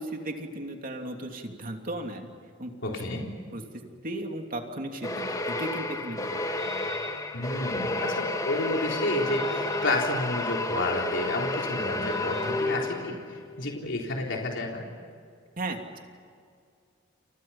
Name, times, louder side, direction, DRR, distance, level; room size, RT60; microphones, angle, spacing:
voice 1, 0.0-2.3 2.6-3.0 3.5-3.6 4.0-6.4 6.7-6.9 15.6-16.0, right 1 dB, 45° right, 3 dB, 3.1 m, -36 dB
voice 2, 2.8-3.2 7.3-14.8, left 2 dB, 65° left, 0 dB, 3.9 m, -30 dB
sound 1, 5.0-13.3, left 2 dB, 20° left, 1.7 m, -31 dB
sound 2, 5.8-8.5 9.0-14.2, left 2 dB, ahead, 5.1 m, -40 dB
29.5 x 29.5 x 5.8 m, 2.2 s
head